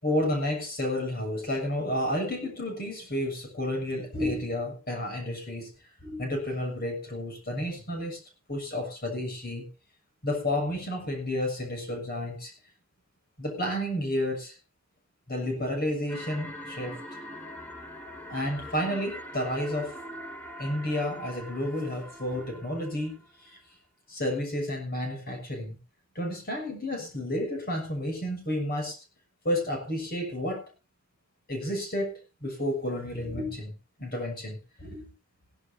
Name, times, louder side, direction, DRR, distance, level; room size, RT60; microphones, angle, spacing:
voice 1, 0.0-5.7 6.0-8.2 8.5-9.7 10.2-12.5 13.4-14.5 15.3-17.0 18.3-19.9 20.6-23.2 23.4-23.6 24.1-25.8 26.1-29.0 29.4-30.6 31.5-32.1 32.4-33.7 34.0-35.1, left 1 dB, 45° left, 4 dB, 6.4 m, -31 dB
sound 1, 16.1-23.3, equal, 10° left, 2.9 m, -43 dB
17.5 x 16.5 x 2.8 m, 0.32 s
head